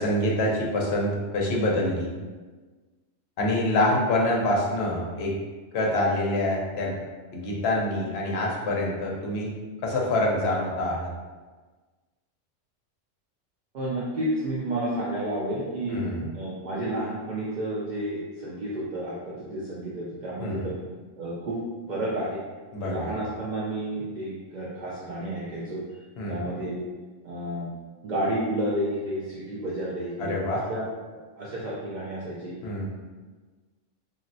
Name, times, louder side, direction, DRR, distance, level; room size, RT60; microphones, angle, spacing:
voice 1, 0.0-2.1 3.4-5.3 5.7-6.9 7.3-9.5 9.8-11.1 15.9-16.3 20.4-20.7 22.7-23.2 26.2-26.5 30.2-30.6 32.6-32.9, left 1 dB, 60° left, -2 dB, 0.8 m, -26 dB
voice 2, 13.7-16.0 16.3-20.8 21.2-21.6 21.9-22.4 22.8-25.8 26.3-26.9 27.2-27.7 28.0-30.8 31.4-32.5, right 1 dB, 70° right, -7 dB, 0.4 m, -31 dB
3.0 x 2.5 x 2.5 m, 1.3 s
omnidirectional pair, 1.3 m